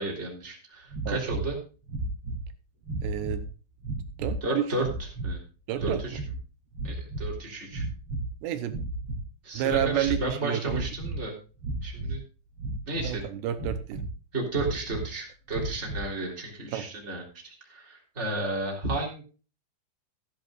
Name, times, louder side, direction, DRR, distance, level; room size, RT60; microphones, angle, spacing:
voice 1, 0.0-1.6 4.4-4.9 5.2-5.4 5.8-6.2 6.8-7.8 9.4-11.3 11.8-12.2 12.9-13.2 14.3-19.2, right 2 dB, 15° right, -1 dB, 3.1 m, -33 dB
sound 1, 0.9-1.5 1.9-2.5 2.8-3.5 3.8-4.4 4.8-5.3 5.8-6.4 6.7-7.4 7.7-8.3 8.7-9.2 9.6-10.3 10.6-11.2 11.6-12.2 12.6-13.2 13.5-14.1 14.5-15.1 15.5-16.1, right 2 dB, 30° right, 2.9 m, -33 dB
voice 2, 1.1-1.4 3.0-3.5 4.2-4.7 5.7-6.2 8.4-8.7 9.5-10.9 13.0-14.0 16.7-16.9, right 11 dB, 75° right, 11 dB, 2.9 m, -30 dB
15.5 x 10.5 x 2.5 m, 0.35 s
omnidirectional pair, 5.3 m